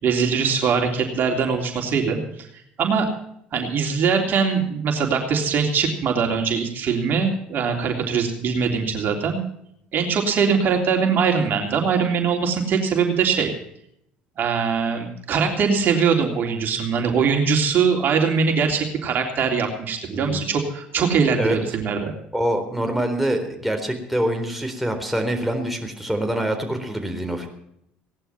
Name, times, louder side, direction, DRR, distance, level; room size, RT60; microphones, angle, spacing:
voice 1, 0.0-2.5 2.8-3.1 3.5-9.4 9.9-13.5 14.4-22.1, right 6 dB, 50° right, 2 dB, 3.3 m, -22 dB
voice 2, 20.1-20.5 21.4-21.6 22.3-27.5, right 1 dB, ahead, 4 dB, 4.0 m, -25 dB
18.0 x 11.5 x 5.9 m, 0.73 s
hypercardioid pair, 70°, 4 cm